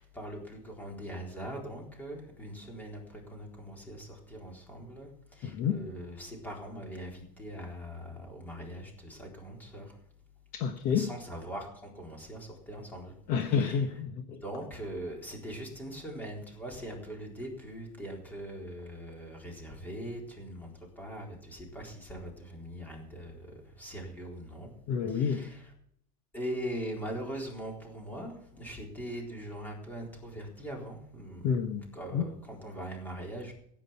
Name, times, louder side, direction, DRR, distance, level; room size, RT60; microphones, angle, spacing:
voice 1, 0.0-9.9 10.9-13.1 13.4-13.9 14.4-23.5 23.8-24.7 25.1-25.7 26.3-31.5 31.9-33.5, right 1 dB, 10° left, 0 dB, 4.0 m, -41 dB
voice 2, 5.4-5.8 10.5-11.1 13.3-14.4 24.9-25.5 31.4-32.2, left 7 dB, 50° left, 7 dB, 1.3 m, -29 dB
16.0 x 9.1 x 5.8 m, 0.69 s
supercardioid pair, 160°, 17 cm